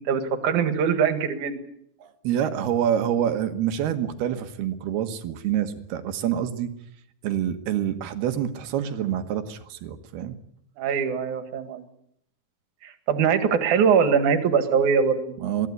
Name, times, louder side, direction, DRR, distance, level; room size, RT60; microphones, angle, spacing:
voice 1, 0.0-1.6 10.8-11.8 12.8-15.3, right 6 dB, 55° right, 9 dB, 3.1 m, -22 dB
voice 2, 2.0-6.7 7.2-10.4 15.4-15.7, right 10 dB, 85° right, 9 dB, 3.4 m, -27 dB
22.0 x 15.0 x 9.9 m, 0.74 s
omnidirectional pair, 4.5 m